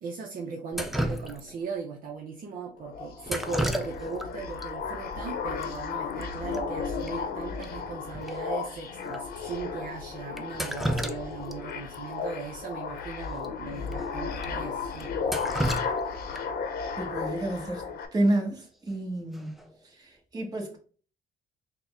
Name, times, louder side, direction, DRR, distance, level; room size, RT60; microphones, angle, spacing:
voice 1, 0.0-15.2, right 5 dB, 55° right, 0.7 m, -38 dB
Drip, 0.7-1.7 3.2-4.3 4.6-4.7 5.6-5.7 6.0-6.2 6.5-6.6 7.1-7.2 7.6-7.7 8.3-8.4 9.1-9.2 10.4-11.6 11.9-12.0 13.4-13.5 13.9-14.0 14.4-14.5 15.0-16.6 18.6-18.9 19.3-19.7, right 1 dB, ahead, 0.4 m, -32 dB
sound 1, 2.8-18.1, left 5 dB, 65° left, 0.7 m, -34 dB
voice 2, 17.0-17.9 18.1-19.6 20.0-20.8, right 1 dB, 25° right, 1.2 m, -29 dB
3.9 x 2.2 x 3.5 m
cardioid pair, 110°, 17 cm